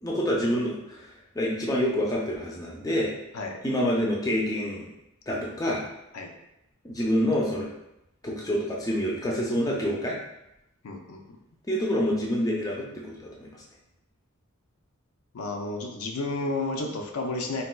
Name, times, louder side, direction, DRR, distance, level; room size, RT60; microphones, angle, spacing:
voice 1, 0.0-1.1 1.4-3.1 3.6-4.9 5.3-5.8 6.8-7.7 8.2-10.2 11.7-13.5, equal, 15° left, -3 dB, 0.4 m, -27 dB
voice 2, 10.8-11.2 15.3-17.6, left 2 dB, 80° left, 2 dB, 0.5 m, -31 dB
4.0 x 2.3 x 2.2 m, 0.86 s
head